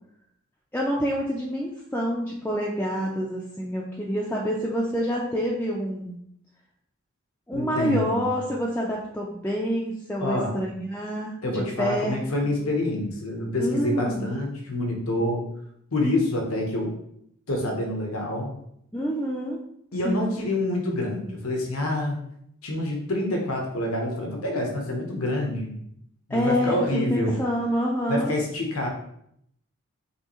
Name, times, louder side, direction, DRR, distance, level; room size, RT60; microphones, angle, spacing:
voice 1, 0.7-6.1 7.5-12.2 12.4-12.6 13.6-14.3 18.9-19.6 20.0-20.4 26.3-28.3, equal, 10° left, -4 dB, 0.4 m, -27 dB
voice 2, 7.5-8.2 10.2-10.6 11.4-15.4 15.9-16.9 17.5-18.5 19.9-22.2 22.6-25.8 26.3-27.4 28.1-28.9, left 1 dB, 90° left, 1 dB, 1.0 m, -27 dB
5.4 x 3.2 x 3.0 m, 0.73 s
head